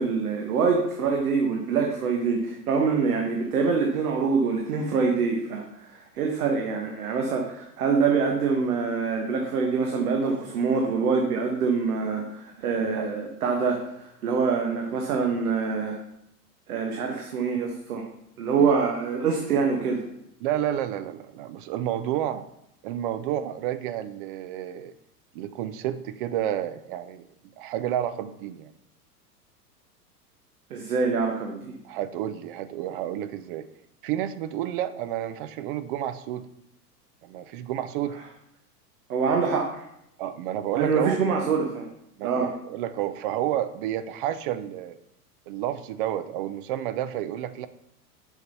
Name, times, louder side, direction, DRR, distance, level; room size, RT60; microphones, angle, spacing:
voice 1, 0.0-16.0 16.7-18.1 18.4-20.0 30.7-31.7 39.1-39.9 40.7-41.9 42.2-42.5, right 5 dB, 65° right, 3 dB, 1.4 m, -25 dB
voice 2, 20.4-22.4 22.8-24.9 25.3-27.3 27.6-28.7 31.8-33.7 34.0-36.5 37.2-38.2 40.2-41.2 42.2-45.0 45.5-47.7, right 11 dB, 35° right, 12 dB, 0.5 m, -30 dB
6.6 x 6.4 x 5.6 m, 0.79 s
figure-of-eight pair, 95°, 48 cm